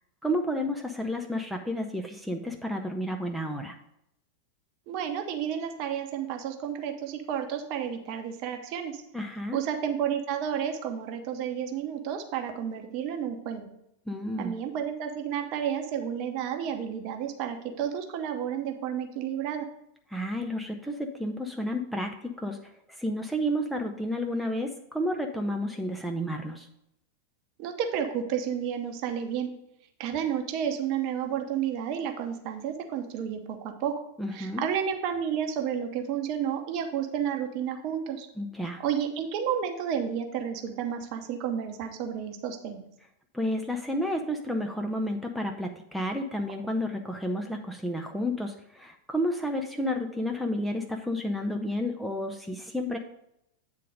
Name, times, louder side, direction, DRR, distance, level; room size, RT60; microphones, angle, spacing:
voice 1, 0.2-3.8 9.1-9.6 14.1-14.5 20.1-22.6 23.0-26.7 34.2-34.6 38.4-38.8 43.3-53.0, equal, ahead, 3 dB, 0.6 m, -31 dB
voice 2, 4.9-9.0 9.5-13.7 14.4-19.6 27.6-29.5 30.0-33.9 34.3-38.3 38.8-42.8, right 8 dB, 45° right, 5 dB, 0.8 m, -31 dB
8.4 x 3.8 x 5.1 m, 0.79 s
figure-of-eight pair, 90°, 0 cm